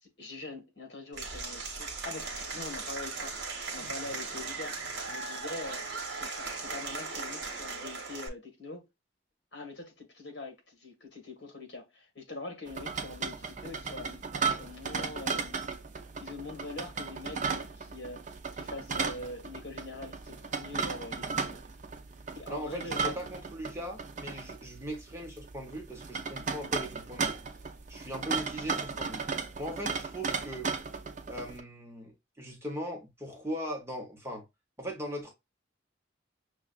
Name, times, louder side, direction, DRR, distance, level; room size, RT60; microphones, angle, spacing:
voice 1, 0.0-4.8 5.1-5.8 6.2-8.8 9.5-15.6 16.2-18.3 18.5-21.6 22.3-23.2 26.5-26.7, left 2 dB, 60° left, 1.5 m, -43 dB
Applause / Crowd, 1.1-8.3, right 4 dB, 60° right, 1.0 m, -38 dB
sound 1, 12.7-31.6, right 5 dB, 40° right, 0.5 m, -36 dB
voice 2, 22.5-27.3 27.9-29.2 29.6-30.7 31.3-34.4 34.8-35.3, equal, 15° right, 0.9 m, -39 dB
6.1 x 2.3 x 2.4 m
head